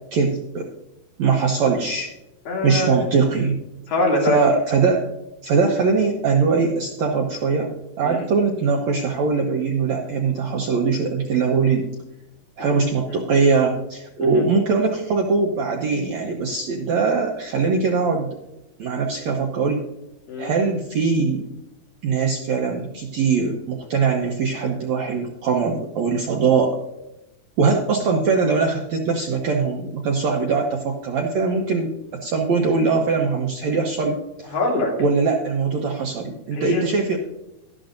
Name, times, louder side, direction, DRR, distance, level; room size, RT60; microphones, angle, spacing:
voice 1, 0.1-0.7 1.2-2.1 2.6-3.6 4.2-5.0 5.4-7.7 8.0-11.9 12.6-18.3 18.8-19.8 20.4-21.5 22.0-26.8 27.6-34.5 35.0-37.2, right 4 dB, 70° right, 1 dB, 1.7 m, -21 dB
voice 2, 2.5-3.0 3.9-4.4 8.0-8.2 13.1-13.2 14.2-14.4 20.3-20.5 34.5-34.9 36.6-36.8, left 2 dB, 65° left, -2 dB, 4.1 m, -23 dB
13.0 x 11.5 x 2.6 m, 0.92 s
omnidirectional pair, 4.4 m